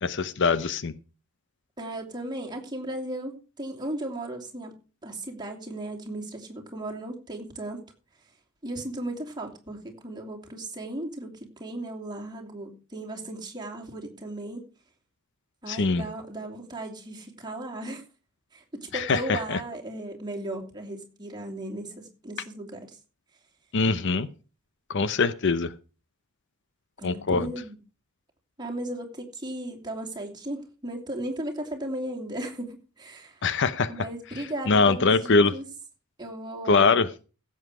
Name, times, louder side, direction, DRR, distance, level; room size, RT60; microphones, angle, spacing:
voice 1, 0.0-0.9 15.7-16.0 18.9-19.6 23.7-24.3 24.9-25.7 27.0-27.5 33.4-33.9 34.7-35.6 36.7-37.1, left 4 dB, 55° left, 15 dB, 0.7 m, -22 dB
voice 2, 1.8-4.7 5.0-7.8 8.6-11.3 11.6-14.7 15.6-18.0 18.5-23.0 27.0-27.8 28.6-33.4 33.9-35.7 36.2-36.9, right 1 dB, 20° right, 0 dB, 2.9 m, -36 dB
16.0 x 8.0 x 4.8 m, 0.35 s
head